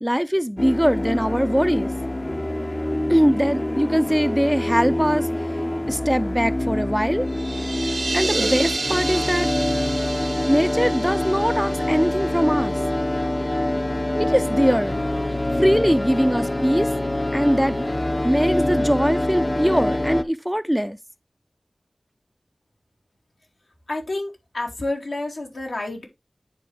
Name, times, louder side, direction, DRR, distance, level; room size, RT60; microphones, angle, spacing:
voice 1, 0.0-1.9 3.1-5.3 5.9-7.3 8.1-9.5 10.5-12.8 14.2-15.0 15.6-16.9 17.3-17.9 18.2-21.0, equal, 5° right, 0.5 m, -21 dB
sound 1, 0.6-20.2, left 1 dB, 35° left, 0.7 m, -25 dB
sound 2, 7.3-12.9, right 3 dB, 70° right, 0.4 m, -30 dB
voice 2, 23.9-26.1, left 2 dB, 85° left, 2.7 m, -29 dB
9.9 x 4.2 x 3.5 m
wide cardioid pair, 45°, 0 cm